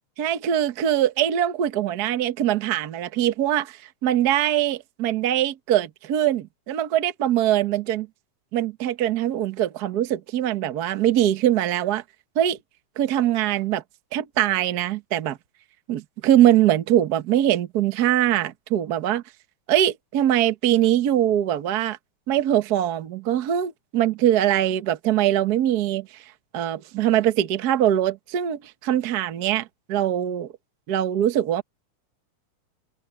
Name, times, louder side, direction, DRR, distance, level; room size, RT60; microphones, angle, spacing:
voice 1, 0.2-8.1 8.5-12.0 12.3-12.6 13.0-13.8 14.1-15.4 15.9-19.2 19.7-22.0 22.3-26.1 26.5-30.5 30.9-31.6, right 11 dB, 70° right, 0.9 m, -22 dB
omnidirectional pair, 3.5 m